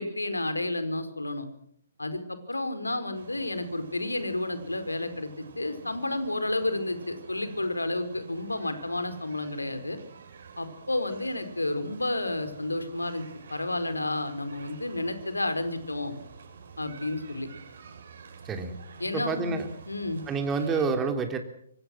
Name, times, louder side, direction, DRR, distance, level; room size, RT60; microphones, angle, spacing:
voice 1, 0.0-1.4 2.0-10.0 10.6-13.2 13.5-16.1 16.8-17.5 19.0-19.6 19.9-20.2, left 2 dB, 85° left, 9 dB, 4.8 m, -31 dB
sound 1, 3.1-20.8, right 5 dB, 55° right, 6.5 m, -49 dB
voice 2, 19.1-19.7 20.3-21.4, right 4 dB, 15° right, 5 dB, 3.5 m, -28 dB
27.5 x 25.0 x 6.4 m, 0.67 s
figure-of-eight pair, 130°, 0 cm